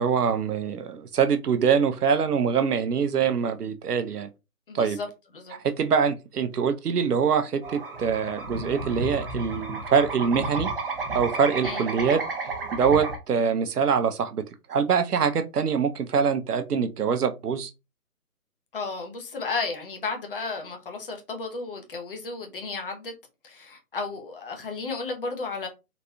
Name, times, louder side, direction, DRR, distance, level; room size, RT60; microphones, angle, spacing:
voice 1, 0.0-4.3 4.7-5.0 5.6-10.7 11.1-12.2 12.7-14.4 14.7-17.7, right 6 dB, 80° right, 0.7 m, -24 dB
voice 2, 4.7-5.1 5.3-5.6 11.6-11.9 18.7-23.1 23.4-25.7, left 4 dB, 35° left, 0.9 m, -33 dB
sound 1, 7.6-13.2, right 3 dB, 35° right, 0.8 m, -32 dB
4.0 x 2.9 x 2.3 m
figure-of-eight pair, 155°, 46 cm